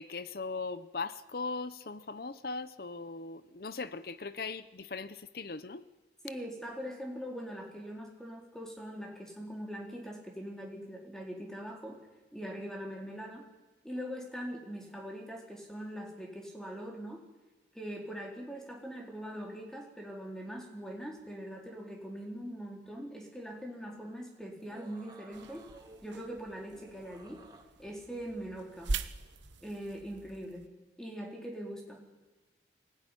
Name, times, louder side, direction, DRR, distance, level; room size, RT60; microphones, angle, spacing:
voice 1, 0.0-5.9, left 4 dB, 55° left, 14 dB, 0.8 m, -39 dB
voice 2, 6.2-12.0 12.3-13.5 13.8-17.2 17.7-25.6 26.0-27.4 27.8-28.9 29.6-30.7 31.0-32.0, equal, 5° left, 0 dB, 3.9 m, -42 dB
sound 1, 24.6-26.0 26.7-27.6, right 2 dB, 20° right, 2.0 m, -55 dB
sound 2, 25.3-30.7, right 3 dB, 85° right, 1.1 m, -42 dB
23.5 x 17.0 x 10.0 m, 1.2 s
head